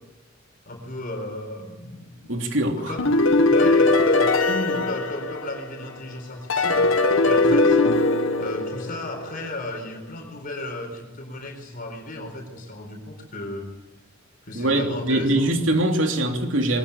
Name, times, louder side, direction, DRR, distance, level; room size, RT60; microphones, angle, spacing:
voice 1, 0.7-2.4 2.8-3.1 3.5-7.8 8.4-13.7 14.5-15.6, left 1 dB, 45° left, 4.4 m, -35 dB
voice 2, 2.3-2.9 14.5-16.8, right 1 dB, 70° right, 3.3 m, -22 dB
sound 1, 3.0-5.8 6.5-9.3, left 2 dB, 80° left, 1.8 m, -20 dB
23.0 x 20.0 x 8.4 m
head